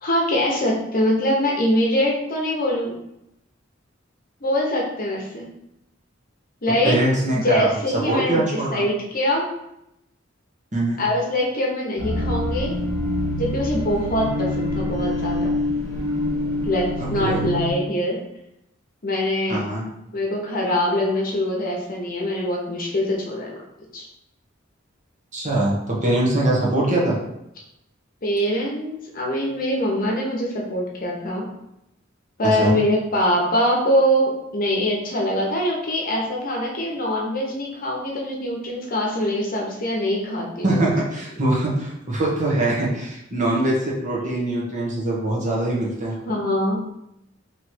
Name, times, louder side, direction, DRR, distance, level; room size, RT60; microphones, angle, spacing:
voice 1, 0.0-2.9 4.4-5.5 6.6-6.9 7.3-8.4 8.7-9.5 11.0-12.7 13.4-15.5 16.6-18.2 19.0-19.6 20.1-23.5 23.9-24.1 28.2-31.5 32.4-40.9 46.2-46.8, left 1 dB, 45° left, -2 dB, 0.9 m, -23 dB
voice 2, 6.7-8.8 10.7-11.0 17.0-17.4 19.5-19.9 25.3-27.2 32.4-32.8 40.6-46.1, right 1 dB, 40° right, -4 dB, 1.2 m, -23 dB
sound 1, 12.0-17.7, left 1 dB, 80° right, 1.2 m, -25 dB
3.2 x 3.1 x 4.3 m, 0.83 s
head